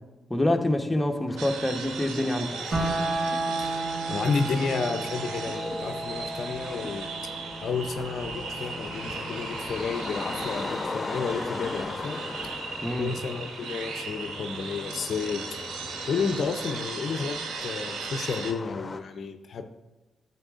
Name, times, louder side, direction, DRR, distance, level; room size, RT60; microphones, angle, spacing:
voice 1, 0.3-2.5 12.8-13.1, left 1 dB, 15° left, 4 dB, 1.0 m, -26 dB
sound 1, 1.3-19.0, left 3 dB, 35° left, 0.8 m, -39 dB
sound 2, 1.4-18.5, right 6 dB, 80° right, 0.7 m, -38 dB
sound 3, 2.7-12.7, right 2 dB, 50° right, 1.5 m, -35 dB
voice 2, 4.1-7.1 7.6-12.2 13.0-15.4 15.8-17.4 17.6-19.6, left 5 dB, 65° left, 7 dB, 0.5 m, -31 dB
9.6 x 7.0 x 2.5 m, 1.1 s
supercardioid pair, 50°, 0 cm